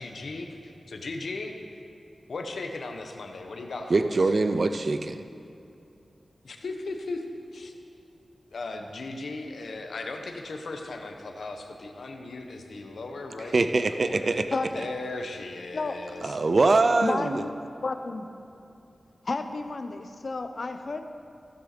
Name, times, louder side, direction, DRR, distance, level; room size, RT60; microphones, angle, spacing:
voice 1, 0.0-1.8 2.3-4.1 6.4-7.2 7.5-7.7 8.5-14.4 14.7-16.4, left 3 dB, 75° left, 4 dB, 1.1 m, -37 dB
voice 2, 3.9-5.2 13.4-14.5 16.2-17.4, right 3 dB, 50° right, 9 dB, 0.5 m, -23 dB
voice 3, 14.5-14.8 15.7-16.0 17.0-17.5 17.8-18.3 19.2-21.0, left 3 dB, 50° left, 8 dB, 0.8 m, -31 dB
16.0 x 7.0 x 6.8 m, 2.7 s
wide cardioid pair, 120°, 0 cm